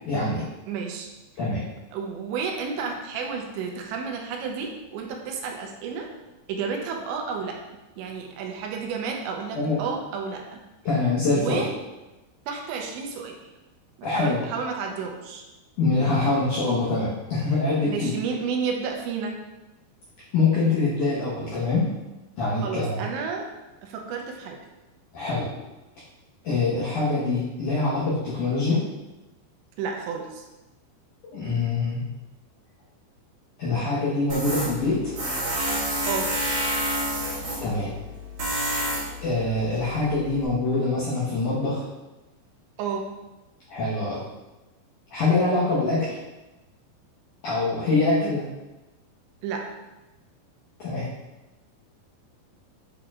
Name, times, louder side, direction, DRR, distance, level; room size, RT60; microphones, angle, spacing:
voice 1, 0.1-0.4 1.4-1.6 9.6-9.8 10.9-11.7 14.0-14.4 15.8-18.1 20.3-21.9 22.4-23.0 25.1-25.5 26.4-28.8 31.3-32.0 33.6-35.1 37.6-37.9 39.2-41.8 43.7-44.2 45.1-46.1 47.4-48.4 50.8-51.1, left 3 dB, 70° left, -10 dB, 1.9 m, -24 dB
voice 2, 0.7-1.1 1.9-6.1 6.5-7.6 8.0-10.6 11.3-11.7 12.5-13.5 14.0-15.4 17.8-19.4 22.6-23.5 23.8-24.6 29.8-30.4 36.1-36.3 42.8-43.1 48.2-48.4 49.4-49.7, right 5 dB, 80° right, 1 dB, 2.9 m, -31 dB
Tools, 34.3-40.4, right 1 dB, 55° right, 1.7 m, -29 dB
8.6 x 4.5 x 2.4 m, 1.0 s
omnidirectional pair, 5.2 m